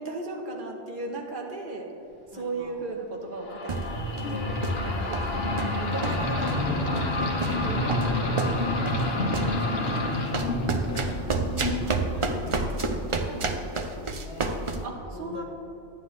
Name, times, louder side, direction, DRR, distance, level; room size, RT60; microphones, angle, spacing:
voice 1, 0.0-1.9 2.3-10.3 14.8-15.4, right 2 dB, 55° right, 0 dB, 1.3 m, -37 dB
voice 2, 2.3-2.9 4.9-5.8 7.5-8.6 9.1-13.6 13.9-14.7 15.1-15.4, left 2 dB, 85° left, 0 dB, 1.6 m, -43 dB
sound 1, 3.4-12.8, left 2 dB, 65° left, 1.3 m, -28 dB
sound 2, 3.7-4.4 4.6-4.9 5.1-5.7 6.0-6.7 6.9-7.1 7.4-9.1 9.3-9.6 10.3-14.8, right 3 dB, 35° right, 0.6 m, -29 dB
11.0 x 9.7 x 3.2 m, 2.7 s
omnidirectional pair, 1.1 m